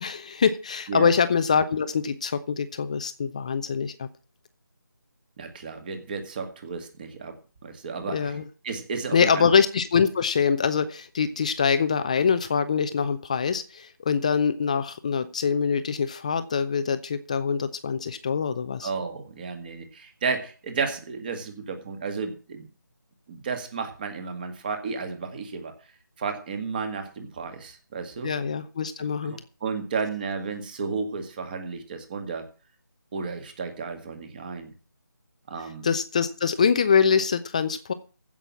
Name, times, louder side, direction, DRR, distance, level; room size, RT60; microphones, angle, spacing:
voice 1, 0.0-4.1 8.1-8.4 9.1-18.9 28.2-29.4 35.8-37.9, left 6 dB, 20° left, 12 dB, 0.5 m, -24 dB
voice 2, 5.4-7.4 7.6-8.4 8.6-9.5 18.8-22.7 23.3-25.8 26.2-28.3 29.0-32.5 33.1-34.7 35.5-35.9, right 5 dB, 25° right, 7 dB, 1.9 m, -33 dB
15.5 x 6.1 x 7.2 m, 0.35 s
figure-of-eight pair, 165°, 11 cm